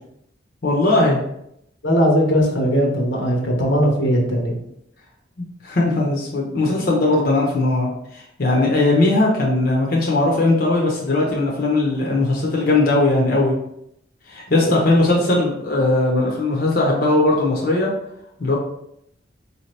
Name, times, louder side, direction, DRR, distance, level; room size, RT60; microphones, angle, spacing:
voice 1, 0.6-1.2 5.6-13.5 14.3-17.9 18.4-18.6, left 2 dB, 50° left, -2 dB, 0.8 m, -19 dB
voice 2, 1.8-4.5 14.6-14.8 15.1-15.4, equal, 85° left, 0 dB, 1.1 m, -19 dB
4.7 x 2.8 x 3.2 m, 0.77 s
head